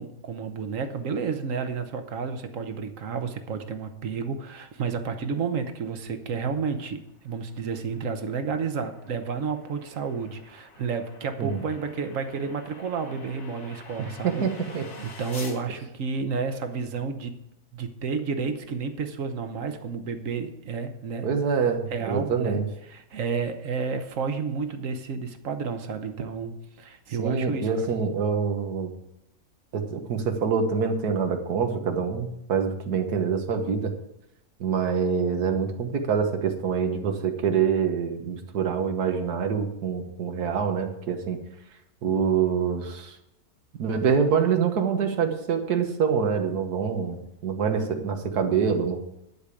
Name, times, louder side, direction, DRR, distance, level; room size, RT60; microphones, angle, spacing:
voice 1, 0.0-14.4 15.0-17.4 17.7-21.3 21.9-22.6 22.9-28.0, right 5 dB, 60° right, 8 dB, 1.3 m, -31 dB
sound 1, 6.9-15.6, left 3 dB, 80° left, 2.0 m, -48 dB
voice 2, 14.2-14.9 21.2-22.7 27.2-28.9 29.7-33.9 34.6-41.4 42.0-43.2 43.8-49.0, right 6 dB, 85° right, 6 dB, 1.7 m, -25 dB
11.0 x 5.1 x 8.3 m, 0.85 s
omnidirectional pair, 1.6 m